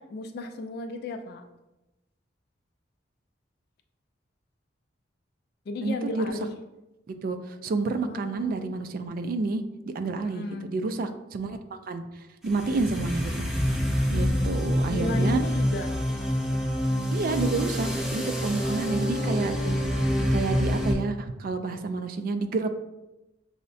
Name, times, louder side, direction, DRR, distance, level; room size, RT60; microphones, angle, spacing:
voice 1, 0.0-1.4 5.7-6.5 8.0-8.6 10.1-10.7 14.0-15.9 18.6-19.9, left 2 dB, 55° left, 6 dB, 0.3 m, -35 dB
voice 2, 5.8-6.3 7.1-9.6 9.9-11.6 11.9-12.0 12.4-13.5 14.1-15.4 17.1-19.9 20.3-22.7, right 3 dB, 50° right, 8 dB, 0.3 m, -29 dB
sound 1, 12.4-20.9, equal, 5° right, 0.5 m, -27 dB
5.5 x 2.1 x 2.6 m, 0.98 s
head